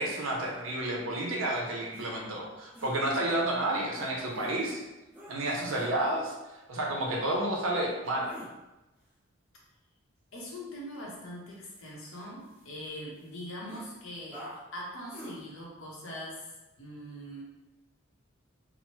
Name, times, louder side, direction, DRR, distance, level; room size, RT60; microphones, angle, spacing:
voice 1, 0.0-4.8 5.3-6.3 6.7-8.3, right 1 dB, 75° right, -1 dB, 0.7 m, -30 dB
sound 1, 1.9-2.1 2.7-2.9 3.9-4.5 5.1-5.4 5.7-5.9 8.0-8.5 11.5-12.9 13.2-13.3 13.7-13.8 14.3-14.6 15.1-15.4, equal, 5° right, 0.4 m, -46 dB
voice 2, 10.3-14.4 14.7-16.5 16.8-17.4, equal, 70° left, -2 dB, 0.7 m, -42 dB
3.0 x 2.0 x 2.9 m, 1.0 s
head